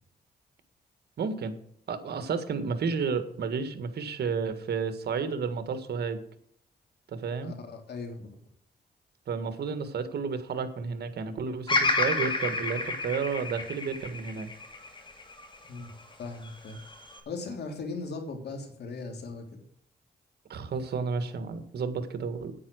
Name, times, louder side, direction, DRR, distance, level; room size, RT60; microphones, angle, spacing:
voice 1, 1.2-1.5 1.9-6.2 7.1-7.5 9.3-14.5 20.5-22.5, right 5 dB, 75° right, 10 dB, 1.7 m, -31 dB
voice 2, 7.4-8.3 15.7-15.9 16.2-16.8 17.3-19.4, left 3 dB, 80° left, 4 dB, 3.1 m, -38 dB
Bird vocalization bird call bird song, 11.7-15.9 16.4-17.2, left 3 dB, 30° left, 2.6 m, -30 dB
9.8 x 9.1 x 6.3 m, 0.66 s
cardioid pair, 80°, 17 cm